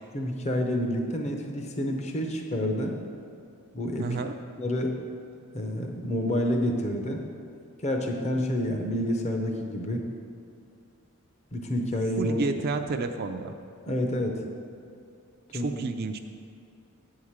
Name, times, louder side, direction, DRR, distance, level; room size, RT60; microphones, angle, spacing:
voice 1, 0.1-3.0 3.7-4.1 4.6-5.0 5.5-7.2 7.8-10.1 11.5-12.4 13.9-14.4 15.5-15.8, left 1 dB, 30° left, 3 dB, 0.7 m, -28 dB
voice 2, 4.0-4.3 12.2-13.5 15.5-16.2, right 3 dB, 45° right, 6 dB, 0.4 m, -30 dB
8.7 x 4.8 x 7.2 m, 2.5 s
head